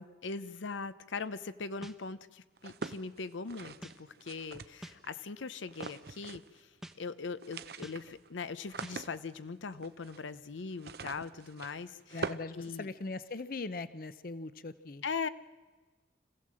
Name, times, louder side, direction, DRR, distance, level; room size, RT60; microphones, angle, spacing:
voice 1, 0.2-6.7 7.0-12.9 15.0-15.3, left 4 dB, 85° left, 14 dB, 0.7 m, -40 dB
sound 1, 1.8-2.0 2.8-3.0 3.8-4.0 4.8-5.0 5.8-6.0 6.8-7.0 7.8-8.0 8.8-9.0, equal, ahead, 0.8 m, -45 dB
sound 2, 2.6-5.1 5.7-6.6 6.9-7.0 7.3-13.4, right 4 dB, 55° right, 0.7 m, -44 dB
voice 2, 12.1-15.0, left 3 dB, 50° left, 14 dB, 0.7 m, -40 dB
26.0 x 16.0 x 7.6 m, 1.3 s
head